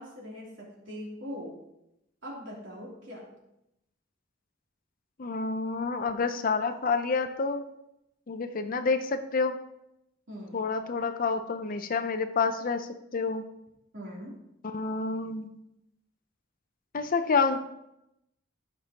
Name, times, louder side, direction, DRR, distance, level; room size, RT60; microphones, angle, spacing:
voice 1, 0.0-1.5 2.2-3.3 10.3-10.6 13.9-14.3, equal, 70° right, -4 dB, 3.1 m, -41 dB
voice 2, 5.2-7.7 8.3-9.6 10.5-12.9 13.1-13.4 14.6-15.5 16.9-17.6, left 4 dB, 45° left, 9 dB, 0.6 m, -28 dB
14.5 x 6.0 x 2.9 m, 0.85 s
head